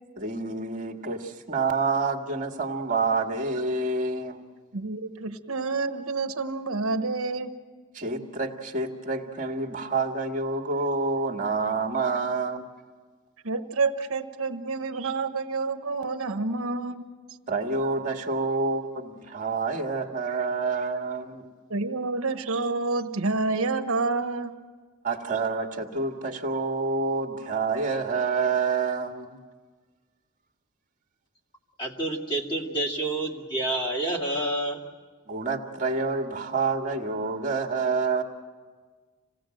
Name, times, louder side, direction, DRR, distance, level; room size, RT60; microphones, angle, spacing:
voice 1, 0.2-4.4 7.9-12.7 17.5-21.5 25.0-29.4 35.3-38.2, right 4 dB, 35° right, 3 dB, 1.9 m, -28 dB
voice 2, 4.7-7.5 13.4-17.0 21.7-24.5, right 3 dB, 65° right, 8 dB, 1.2 m, -28 dB
voice 3, 31.8-34.8, right 1 dB, 20° left, -3 dB, 2.4 m, -28 dB
27.0 x 18.0 x 7.7 m, 1.5 s
head